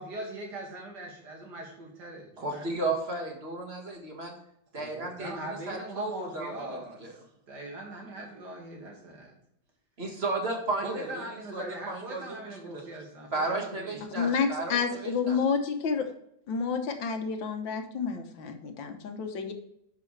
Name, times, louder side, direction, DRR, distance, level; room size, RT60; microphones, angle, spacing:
voice 1, 0.0-2.9 4.8-7.1 7.5-9.4 10.8-14.0, right 1 dB, 60° right, 1 dB, 2.6 m, -41 dB
voice 2, 2.4-4.4 4.7-7.1 10.0-11.2 11.5-12.7 13.3-15.4, right 2 dB, 35° right, 1 dB, 1.8 m, -34 dB
voice 3, 14.2-16.1 16.5-19.5, left 5 dB, 80° left, 6 dB, 1.8 m, -29 dB
10.0 x 6.1 x 3.3 m, 0.74 s
omnidirectional pair, 2.1 m